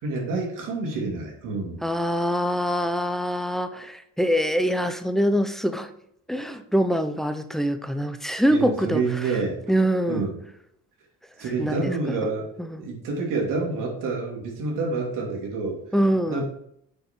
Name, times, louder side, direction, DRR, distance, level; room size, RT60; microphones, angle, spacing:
voice 1, 0.0-1.8 8.5-9.6 10.1-10.3 11.4-12.5 12.8-15.8 16.3-16.5, right 3 dB, 90° right, 2.7 m, -28 dB
voice 2, 1.8-5.9 6.3-9.2 9.7-10.3 11.6-12.2 12.6-12.8 15.9-16.4, equal, ahead, 0.6 m, -24 dB
9.1 x 6.9 x 3.7 m
cardioid pair, 140°, 31 cm